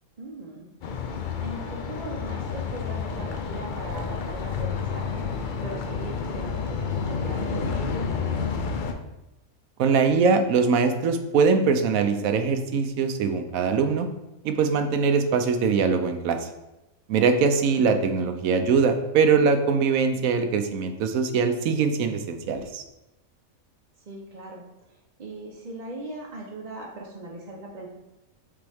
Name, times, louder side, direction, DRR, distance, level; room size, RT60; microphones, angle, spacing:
voice 1, 0.2-0.7 1.0-5.3 5.6-8.3 17.7-17.9 24.0-27.9, right 1 dB, 40° right, -2 dB, 0.7 m, -39 dB
sound 1, 0.8-8.9, left 5 dB, 65° left, 0.5 m, -30 dB
voice 2, 9.8-14.1 14.4-16.5 17.1-22.8, right 5 dB, 75° right, 7 dB, 1.0 m, -22 dB
6.8 x 4.1 x 3.4 m, 0.96 s
omnidirectional pair, 1.5 m